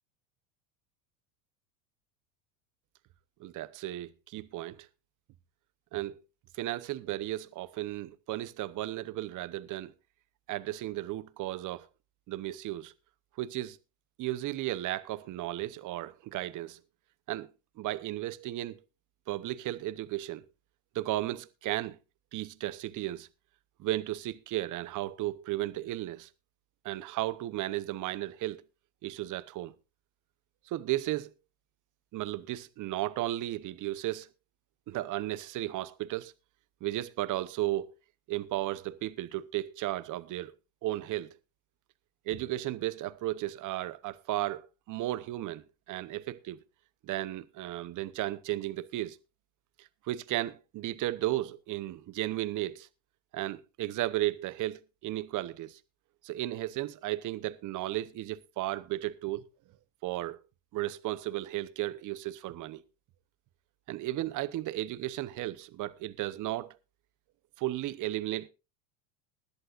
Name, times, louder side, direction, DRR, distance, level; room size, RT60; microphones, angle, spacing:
voice 1, 3.4-4.9 5.9-6.1 6.6-9.9 10.5-11.9 12.3-12.9 13.4-13.8 14.2-16.8 17.3-17.5 17.8-18.8 19.3-20.4 20.9-22.0 22.3-23.3 23.8-26.3 26.8-28.6 29.0-29.7 30.7-31.3 32.1-34.3 34.9-36.3 36.8-37.9 38.3-40.5 40.8-41.3 42.3-46.6 47.0-49.2 50.1-52.9 53.3-55.8 56.2-59.4 60.0-60.4 60.7-62.8 63.9-66.7 67.6-68.5, right 15 dB, 40° right, 0.9 m, -34 dB
20.0 x 11.0 x 2.5 m
hypercardioid pair, 95°, 49 cm